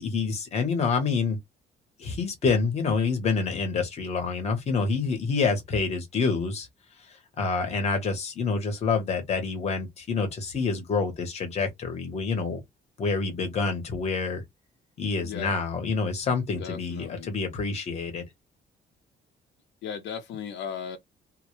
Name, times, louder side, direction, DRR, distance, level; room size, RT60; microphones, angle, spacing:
voice 1, 0.0-1.4 2.0-6.7 7.0-12.6 13.0-14.4 15.0-18.2, left 4 dB, 35° left, 0.8 m, -27 dB
voice 2, 15.2-15.5 16.6-17.3 19.8-21.0, left 7 dB, 80° left, 0.6 m, -36 dB
2.1 x 2.0 x 2.9 m
cardioid pair, 175°, 18 cm